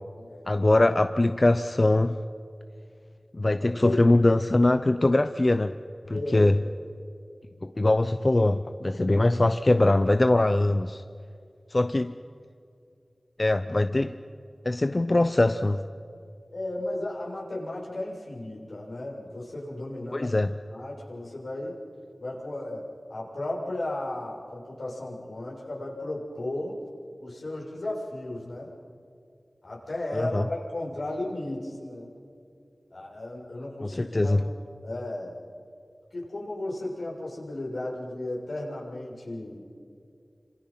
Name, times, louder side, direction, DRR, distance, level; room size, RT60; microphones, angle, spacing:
voice 1, 0.5-2.2 3.3-5.7 6.1-6.6 7.6-11.0 11.7-12.1 13.4-14.2 14.6-15.8 20.1-20.5 30.1-30.4 33.8-34.4, left 2 dB, 40° left, 10 dB, 0.7 m, -22 dB
voice 2, 3.5-4.0 6.1-6.5 16.5-20.3 20.7-21.7 22.2-26.8 27.2-28.7 29.6-32.1 32.9-35.4 36.1-39.8, left 1 dB, 80° left, -4 dB, 6.6 m, -35 dB
29.0 x 26.5 x 5.8 m, 2.4 s
wide cardioid pair, 50°, 0 cm